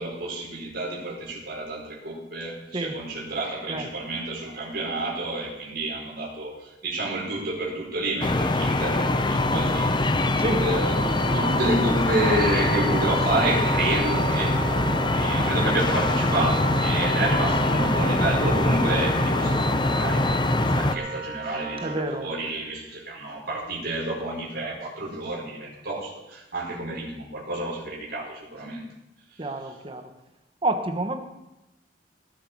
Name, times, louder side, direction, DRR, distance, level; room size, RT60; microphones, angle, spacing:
voice 1, 0.0-6.5 6.8-14.5 15.1-28.8, right 2 dB, 60° right, -5 dB, 5.2 m, -29 dB
sound 1, 8.2-21.0, left 2 dB, 25° left, 0.6 m, -23 dB
Wind instrument woodwind instrument, 10.7-22.0, right 4 dB, 80° right, 6.0 m, -34 dB
voice 2, 21.8-22.3 29.4-30.1 30.6-31.2, right 2 dB, 30° right, 6 dB, 1.3 m, -28 dB
18.5 x 8.2 x 4.8 m, 0.96 s
head